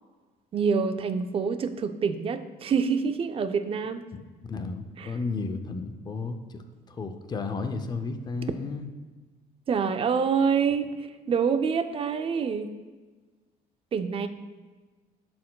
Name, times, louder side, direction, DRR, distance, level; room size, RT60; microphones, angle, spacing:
voice 1, 0.5-4.0 5.0-5.1 9.7-10.9 11.3-12.7 13.9-14.3, right 6 dB, 35° right, 10 dB, 0.4 m, -26 dB
voice 2, 4.5-6.6 6.9-8.9, left 4 dB, 25° left, 7 dB, 0.5 m, -33 dB
11.0 x 4.3 x 2.3 m, 1.3 s
cardioid pair, 110°, 17 cm